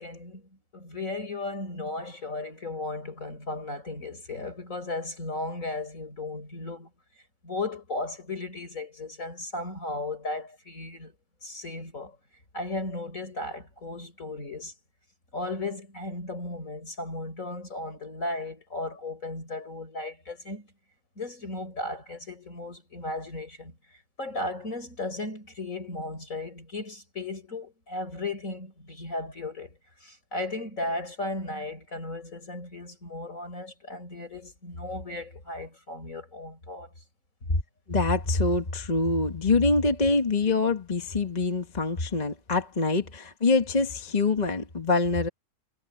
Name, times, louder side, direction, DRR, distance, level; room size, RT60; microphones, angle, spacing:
voice 1, 0.0-6.9 7.4-11.1 11.4-12.2 12.5-14.7 15.3-20.7 21.2-23.8 24.2-36.9, left 2 dB, 55° left, 6.3 m, -35 dB
voice 2, 37.9-45.3, left 3 dB, 25° left, 1.4 m, -25 dB
omnidirectional pair, 1.7 m